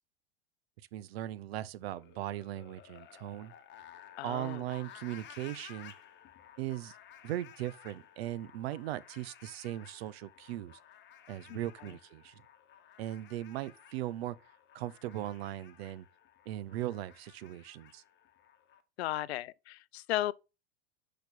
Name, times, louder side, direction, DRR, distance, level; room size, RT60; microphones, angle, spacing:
voice 1, 0.9-3.5 4.2-5.9 6.6-6.9 7.2-10.8 11.3-12.3 13.0-14.4 14.7-16.1 16.5-18.0, right 14 dB, 75° right, 0.7 m, -38 dB
sound 1, 1.8-18.8, left 10 dB, 35° left, 1.1 m, -55 dB
voice 2, 4.2-4.7 11.5-11.6 19.0-20.3, left 15 dB, 80° left, 0.5 m, -35 dB
5.9 x 5.1 x 4.2 m
hypercardioid pair, 105°, 31 cm